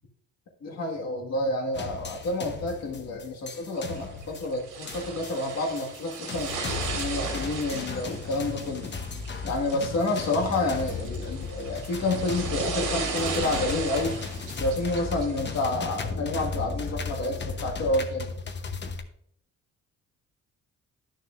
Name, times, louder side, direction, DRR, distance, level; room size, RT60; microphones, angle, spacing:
voice 1, 0.6-6.5 6.9-8.9 9.4-14.2 14.6-18.3, left 2 dB, 60° left, 1 dB, 1.8 m, -29 dB
sound 1, 1.7-19.0, left 4 dB, 35° left, 0.9 m, -36 dB
antalya seashore, 3.8-15.7, right 4 dB, 85° right, 1.9 m, -36 dB
11.0 x 6.5 x 2.5 m, 0.69 s
cardioid pair, 90°, 30 cm